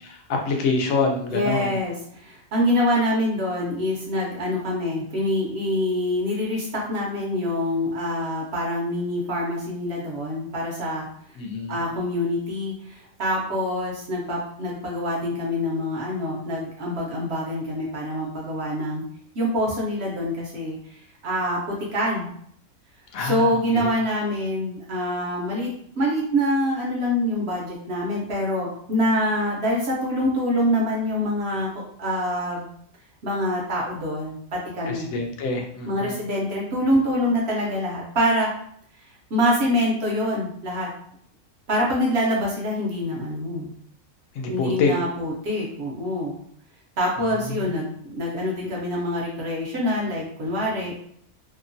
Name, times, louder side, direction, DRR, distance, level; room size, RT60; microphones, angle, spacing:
voice 1, 0.0-1.8 11.4-11.8 23.1-23.9 34.9-36.2 44.3-44.9 47.4-47.7, left 4 dB, 75° left, 2 dB, 1.0 m, -26 dB
voice 2, 1.3-11.1 11.7-19.0 19.3-20.8 21.2-22.3 23.2-25.7 26.0-31.7 32.0-32.7 33.2-35.1 35.9-38.5 39.3-40.9 41.7-43.7 44.5-46.4 47.0-51.0, equal, 60° right, -3 dB, 0.8 m, -25 dB
2.9 x 2.0 x 2.5 m, 0.65 s
omnidirectional pair, 1.5 m